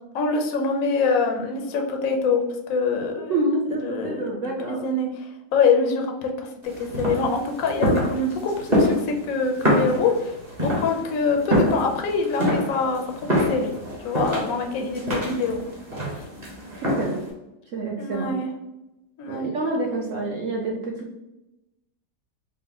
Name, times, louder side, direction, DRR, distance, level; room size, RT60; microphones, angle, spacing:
voice 1, 0.1-2.4 2.7-3.4 3.8-10.3 10.6-13.7 14.0-15.7 16.1-16.2 18.0-18.5 19.2-19.5, left 4 dB, 70° left, 3 dB, 0.8 m, -25 dB
voice 2, 3.3-4.8 17.0-17.2 17.7-18.3 19.3-20.9, right 2 dB, 75° right, -1 dB, 0.7 m, -27 dB
sound 1, 6.6-17.3, equal, 30° right, 1.0 m, -26 dB
3.9 x 2.1 x 3.5 m, 0.95 s
omnidirectional pair, 1.9 m